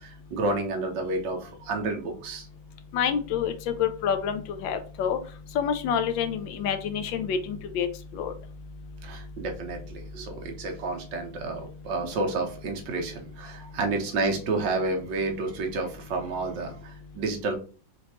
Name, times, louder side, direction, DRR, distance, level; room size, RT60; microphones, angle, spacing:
voice 1, 0.0-2.5 9.0-17.6, right 3 dB, 75° right, 2 dB, 1.6 m, -30 dB
voice 2, 2.9-5.2 5.5-7.9 8.1-8.3, left 7 dB, 85° left, 8 dB, 1.4 m, -27 dB
4.5 x 3.1 x 2.9 m, 0.38 s
omnidirectional pair, 2.0 m